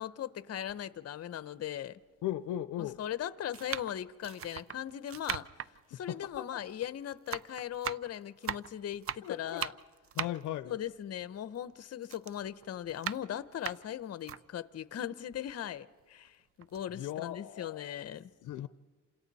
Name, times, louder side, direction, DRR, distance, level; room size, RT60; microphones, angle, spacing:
voice 1, 0.0-2.0 2.8-5.5 5.9-9.7 10.6-18.3, left 10 dB, 55° left, 0.9 m, -39 dB
sound 1, 0.7-0.8 1.7-1.8 2.7-3.0 3.5-6.9 7.1-11.7 12.0-14.4 14.9-15.0 15.3-16.3 16.6-16.8, right 9 dB, 50° right, 0.6 m, -40 dB
voice 2, 2.2-3.0 5.9-6.0 6.4-6.5 9.2-9.6 10.2-10.8 16.9-18.0 18.4-18.7, left 12 dB, 80° left, 0.6 m, -37 dB
28.5 x 26.5 x 4.2 m
cardioid pair, 90°, 30 cm